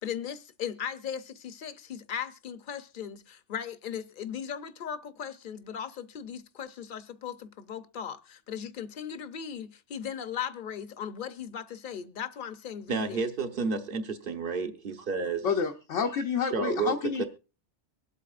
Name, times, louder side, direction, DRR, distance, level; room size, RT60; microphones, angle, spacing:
voice 1, 0.0-13.2, left 8 dB, 50° left, 0.8 m, -38 dB
voice 2, 12.9-15.5 16.5-17.2, right 4 dB, 50° right, 1.1 m, -31 dB
voice 3, 15.4-17.3, left 6 dB, 90° left, 1.2 m, -29 dB
24.0 x 8.3 x 2.4 m
omnidirectional pair, 1.2 m